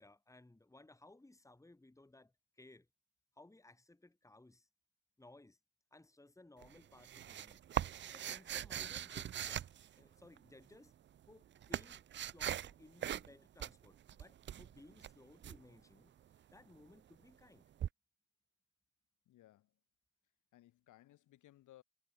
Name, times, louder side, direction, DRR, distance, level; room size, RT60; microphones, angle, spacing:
voice 1, 0.0-2.9 3.4-4.7 5.2-5.6 5.9-7.6 8.1-9.7 10.0-10.9 11.3-16.1 16.5-17.7, left 2 dB, 10° left, 2.5 m, -61 dB
sound 1, 6.6-10.4 11.2-12.7 13.0-13.3 13.6-15.6 17.8-17.9, right 10 dB, 40° right, 0.4 m, -41 dB
voice 2, 19.3-19.8 20.5-21.8, left 14 dB, 85° left, 3.6 m, -62 dB
cardioid pair, 90°, 30 cm